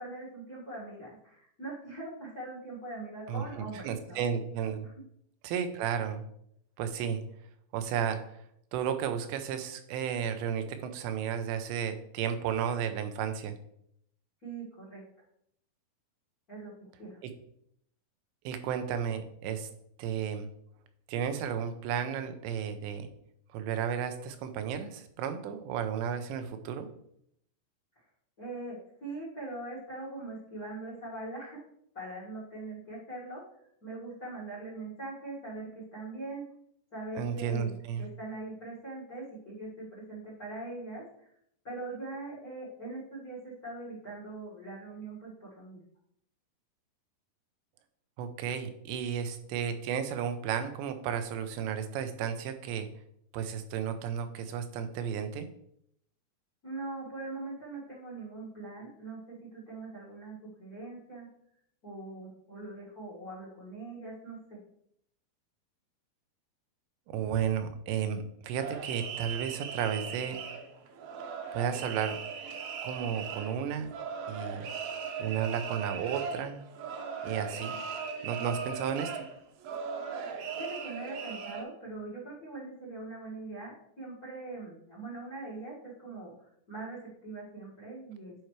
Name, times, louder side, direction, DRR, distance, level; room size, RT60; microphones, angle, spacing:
voice 1, 0.0-4.2 4.8-5.0 14.4-15.0 16.5-16.7 17.0-17.2 28.4-31.6 31.9-33.4 33.8-36.5 36.9-41.3 41.6-45.8 56.6-61.3 61.8-64.6 80.3-88.3, right 2 dB, 70° left, -5 dB, 0.8 m, -42 dB
voice 2, 3.3-4.9 5.4-6.2 6.8-7.2 7.7-8.2 8.7-13.5 17.2-17.3 18.4-19.7 20.0-20.5 21.1-23.1 23.5-26.9 37.2-38.0 48.2-52.9 53.3-55.5 67.1-70.4 71.5-72.2 72.8-73.9 74.3-74.7 75.2-76.6 77.2-77.8 78.2-79.1, right 8 dB, 90° right, 8 dB, 3.0 m, -33 dB
sound 1, 68.6-81.6, right 6 dB, 75° right, 2.3 m, -38 dB
11.5 x 4.6 x 3.1 m, 0.72 s
omnidirectional pair, 4.9 m